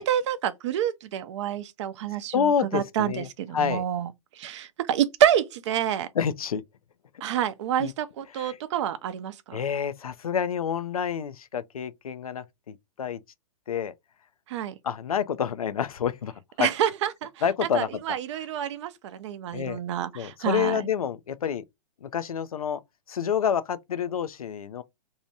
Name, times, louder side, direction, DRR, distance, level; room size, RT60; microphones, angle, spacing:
voice 1, 0.0-4.1 4.4-6.1 7.2-9.6 14.5-14.8 16.6-17.3 17.7-20.8, right 10 dB, 55° right, 0.5 m, -28 dB
voice 2, 2.3-3.3 3.5-3.8 6.2-6.6 7.8-7.9 8.4-8.6 9.5-13.2 13.7-13.9 14.8-16.3 16.6-16.7 17.4-18.0 19.5-19.8 20.1-21.6 22.0-22.8 23.1-24.8, left 8 dB, 90° left, 0.4 m, -28 dB
2.7 x 2.2 x 2.7 m
hypercardioid pair, 120°, 18 cm